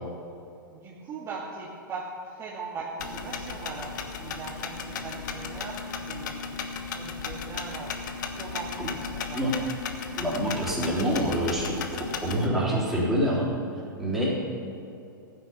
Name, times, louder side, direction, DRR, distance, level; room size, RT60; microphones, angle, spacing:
voice 1, 0.8-6.4 6.9-8.0 8.4-9.7, right 4 dB, 25° right, -6 dB, 2.1 m, -40 dB
sound 1, 3.0-12.5, left 5 dB, 60° left, 1.2 m, -35 dB
voice 2, 10.2-11.8 12.2-13.5 14.0-14.4, equal, ahead, -7 dB, 3.6 m, -26 dB
15.5 x 9.7 x 5.7 m, 2.7 s
figure-of-eight pair, 105°, 11 cm